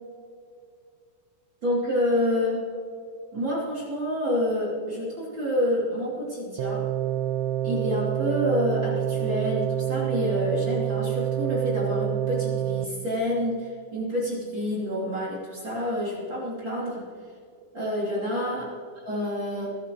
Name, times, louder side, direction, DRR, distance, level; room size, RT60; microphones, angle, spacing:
voice 1, 1.6-2.6 3.3-6.8 7.6-17.0 17.7-18.7 19.0-19.7, left 1 dB, 30° right, -6 dB, 2.9 m, -28 dB
sound 1, 6.6-12.9, right 11 dB, 90° right, 2.1 m, -27 dB
21.5 x 11.0 x 3.1 m, 2.4 s
omnidirectional pair, 5.1 m